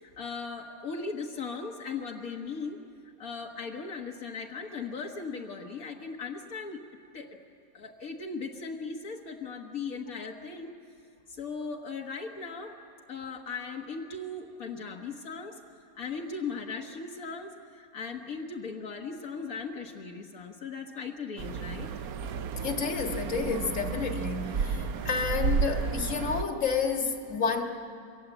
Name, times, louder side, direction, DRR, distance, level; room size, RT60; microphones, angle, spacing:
voice 1, 0.0-2.8 3.2-6.8 7.1-7.4 7.7-10.7 11.3-12.8 13.1-15.6 16.0-21.9, left 4 dB, 75° left, 1 dB, 1.8 m, -38 dB
sound 1, 21.4-26.4, right 5 dB, 80° right, 1.3 m, -32 dB
voice 2, 22.3-27.6, left 5 dB, 60° left, 3 dB, 2.1 m, -30 dB
27.5 x 23.0 x 8.0 m, 2.4 s
omnidirectional pair, 1.5 m